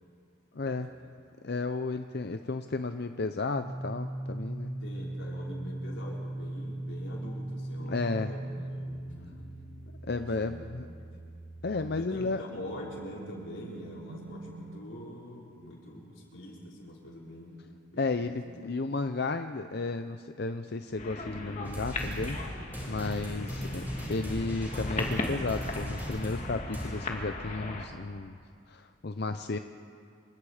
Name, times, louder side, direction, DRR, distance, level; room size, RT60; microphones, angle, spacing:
voice 1, 0.5-0.9 1.4-4.8 7.8-8.3 10.0-10.9 11.6-12.4 18.0-22.6 22.9-23.8 24.1-28.4 28.7-29.6, left 3 dB, 55° left, 8 dB, 0.6 m, -33 dB
sound 1, 3.5-14.8, right 1 dB, 70° right, 2.8 m, -40 dB
voice 2, 4.8-9.1 10.4-11.1 11.9-17.6 17.9-18.4 23.4-23.8, left 1 dB, 85° left, -4 dB, 5.6 m, -44 dB
sound 2, 21.0-27.9, left 2 dB, 40° left, 2.3 m, -37 dB
sound 3, 21.6-26.9, equal, 10° right, 6.4 m, -38 dB
27.5 x 25.5 x 5.0 m, 2.3 s
head